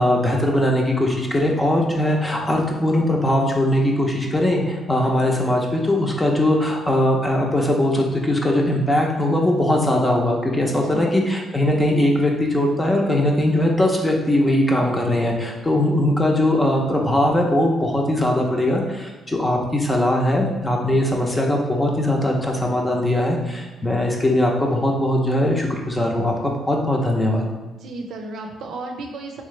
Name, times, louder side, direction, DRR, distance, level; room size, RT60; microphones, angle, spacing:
voice 1, 0.0-27.5, left 1 dB, 15° left, 0 dB, 0.7 m, -20 dB
voice 2, 10.6-11.1 27.7-29.4, right 2 dB, 75° right, 3 dB, 0.5 m, -33 dB
3.7 x 3.1 x 3.2 m, 1.2 s
cardioid pair, 90°, 0 cm